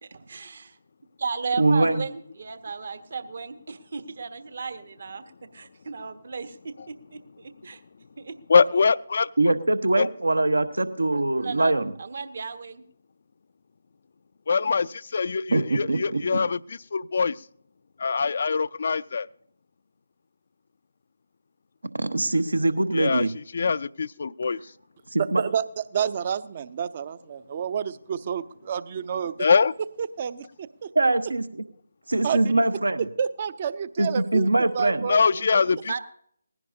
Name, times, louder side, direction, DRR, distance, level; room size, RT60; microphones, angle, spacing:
voice 1, 0.0-0.8 1.2-5.2 5.5-7.8 8.2-8.4 11.4-11.7 12.0-12.8 35.9-36.0, right 5 dB, 50° right, 11 dB, 1.1 m, -34 dB
voice 2, 1.6-2.1 9.4-11.9 15.5-16.4 21.9-23.3 25.1-25.4 30.9-31.6 32.1-33.1 34.0-35.1, right 2 dB, 70° right, 13 dB, 1.1 m, -23 dB
voice 3, 8.5-9.5 9.9-10.1 14.5-17.4 18.0-19.3 22.9-23.3 23.5-24.6 29.4-29.7 35.1-36.0, left 5 dB, 45° left, 18 dB, 0.4 m, -23 dB
voice 4, 25.3-29.3 30.0-30.9 32.2-32.4 33.2-35.2, right 7 dB, 30° right, 17 dB, 0.6 m, -29 dB
20.0 x 16.0 x 2.7 m, 0.66 s
figure-of-eight pair, 150°, 0 cm